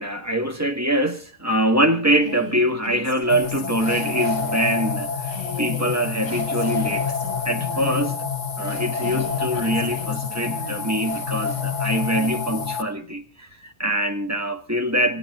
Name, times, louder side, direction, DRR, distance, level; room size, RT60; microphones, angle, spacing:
voice 1, 0.0-7.1 7.4-8.2 8.6-15.2, right 1 dB, 10° right, 1.5 m, -24 dB
Female speech woman speaking, 2.2-4.3 5.3-8.2 9.0-10.9, left 2 dB, 65° left, 7.5 m, -38 dB
sound 1, 3.3-12.8, left 6 dB, 35° left, 1.2 m, -27 dB
27.5 x 15.5 x 2.5 m
omnidirectional pair, 1.5 m